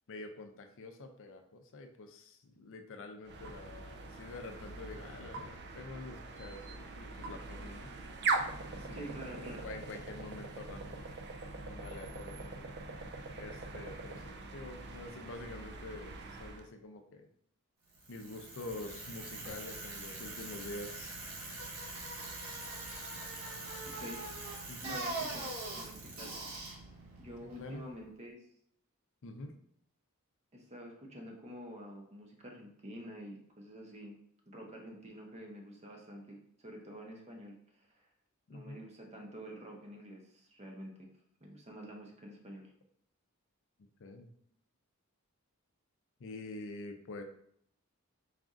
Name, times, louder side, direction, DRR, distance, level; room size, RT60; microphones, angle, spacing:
voice 1, 0.1-7.9 8.7-11.1 11.4-12.7 13.0-17.3 18.1-21.2 24.7-25.0 27.4-27.9 29.2-29.5 38.5-38.8 44.0-44.3 46.2-47.2, left 2 dB, 60° left, 5 dB, 0.5 m, -47 dB
sound 1, 3.2-16.7, right 3 dB, 50° right, 0.4 m, -41 dB
voice 2, 8.9-9.6 23.8-24.2 24.8-26.3 27.2-28.4 30.5-34.1 34.5-37.9 38.5-41.1 41.4-42.7, equal, 30° right, 1 dB, 0.8 m, -48 dB
Bicycle, 17.9-28.0, right 2 dB, 90° right, 1.2 m, -43 dB
4.1 x 2.5 x 3.6 m, 0.68 s
head